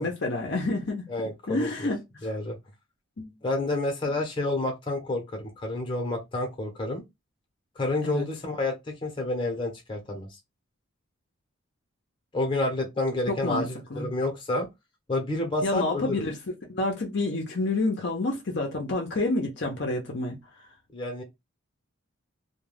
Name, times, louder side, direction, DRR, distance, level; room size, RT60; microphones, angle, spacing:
voice 1, 0.0-1.1 1.5-2.0 3.2-3.3 4.1-4.2 8.0-8.2 13.3-14.1 15.6-16.4 16.7-20.4, left 2 dB, 55° left, 0.6 m, -28 dB
voice 2, 1.1-1.9 2.2-2.6 3.4-7.0 7.8-10.4 12.3-14.7 15.1-16.2 20.9-21.2, left 2 dB, 25° left, 0.8 m, -29 dB
2.3 x 2.2 x 3.2 m
head